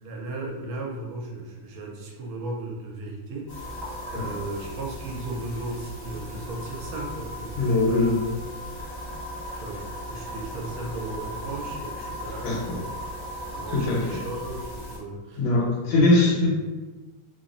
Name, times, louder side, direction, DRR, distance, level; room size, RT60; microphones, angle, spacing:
voice 1, 0.0-8.1 9.4-9.8 10.1-12.9 13.5-15.4 16.2-16.4, right 2 dB, 85° right, -1 dB, 1.5 m, -36 dB
sound 1, 3.5-15.0, equal, 40° left, 0.9 m, -37 dB
voice 2, 7.5-8.2 12.4-12.8 13.7-14.2 15.4-16.5, left 2 dB, 80° left, -4 dB, 1.6 m, -22 dB
3.6 x 2.0 x 2.4 m, 1.3 s
omnidirectional pair, 2.3 m